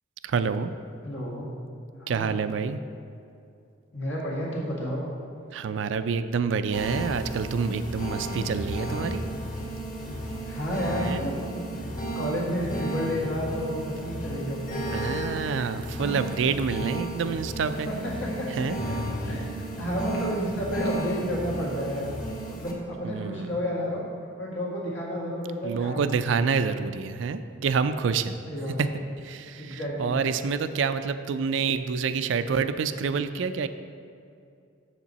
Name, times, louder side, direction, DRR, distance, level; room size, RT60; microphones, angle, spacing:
voice 1, 0.2-0.7 2.1-2.8 5.5-9.2 10.9-11.3 14.9-17.9 18.5-18.8 23.0-23.5 25.6-28.4 28.8-28.9 29.2-33.7, right 5 dB, 70° right, 11 dB, 0.4 m, -27 dB
voice 2, 1.0-1.5 2.0-2.4 3.9-5.1 10.5-11.6 12.1-15.1 17.9-18.5 18.9-19.0 19.3-22.1 22.5-24.0 24.4-26.4 28.4-29.0 29.6-30.1, equal, 65° left, -4 dB, 1.8 m, -31 dB
sound 1, 6.7-22.7, right 1 dB, 45° left, 1.6 m, -33 dB
7.4 x 7.3 x 4.1 m, 2.5 s
head